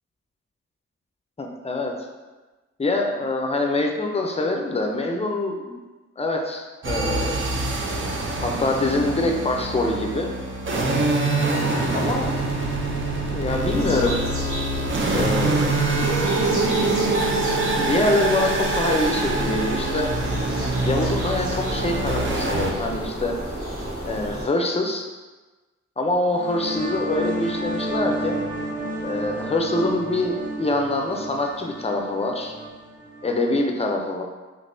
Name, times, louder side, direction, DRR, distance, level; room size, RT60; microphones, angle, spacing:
voice 1, 1.4-1.9 2.8-5.7 6.2-7.3 8.4-10.3 11.4-12.3 13.3-14.2 15.1-15.7 17.8-20.1 20.8-23.3 24.0-25.1 26.0-28.4 29.0-32.5 33.2-34.2, left 2 dB, 20° left, 2 dB, 0.5 m, -24 dB
sound 1, 6.8-22.7, right 2 dB, 40° right, 0.5 m, -25 dB
sound 2, 13.7-24.4, equal, 75° right, 1.5 m, -32 dB
sound 3, 26.3-33.7, right 1 dB, 25° right, 0.9 m, -31 dB
3.4 x 2.8 x 2.6 m, 1.2 s
cardioid pair, 70°, 29 cm